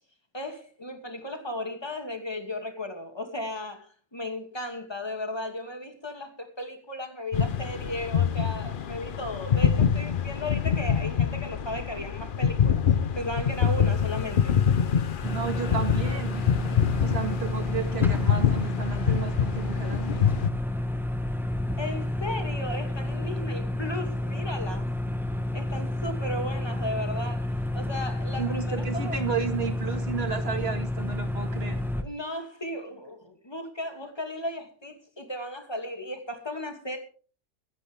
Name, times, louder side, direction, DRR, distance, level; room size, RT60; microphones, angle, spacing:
voice 1, 0.3-12.8 13.2-14.6 21.8-24.9 25.5-29.2 31.9-37.0, left 1 dB, 15° left, 2.5 m, -35 dB
sound 1, 7.3-20.5, left 7 dB, 45° left, 0.7 m, -25 dB
sound 2, 15.2-32.0, left 1 dB, ahead, 1.2 m, -30 dB
voice 2, 15.2-16.4 17.0-20.3 28.4-31.8, right 6 dB, 40° right, 2.1 m, -33 dB
23.5 x 9.9 x 3.6 m
omnidirectional pair, 1.6 m